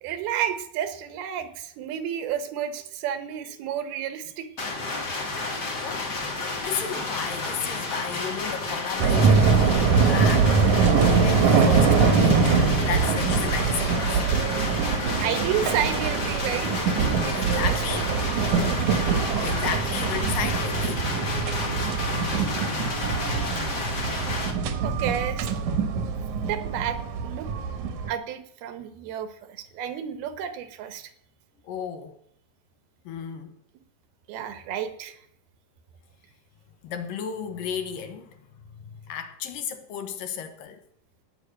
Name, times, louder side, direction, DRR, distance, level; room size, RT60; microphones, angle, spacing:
voice 1, 0.0-4.5 10.0-10.1 15.2-16.9 17.2-17.7 18.1-18.3 21.9-22.0 24.8-25.5 26.5-27.5 28.1-31.1 34.3-35.2, right 9 dB, 80° right, 3.1 m, -31 dB
sound 1, 4.6-24.5, left 3 dB, 50° left, 1.3 m, -31 dB
voice 2, 6.3-12.4 12.9-13.9 17.3-18.1 19.2-21.1 31.6-32.2 33.1-33.6 34.4-34.5 36.8-38.4 38.7-40.8, left 7 dB, 70° left, 2.7 m, -34 dB
sound 2, 9.0-28.1, right 5 dB, 65° right, 2.1 m, -23 dB
17.0 x 6.1 x 8.8 m
omnidirectional pair, 4.4 m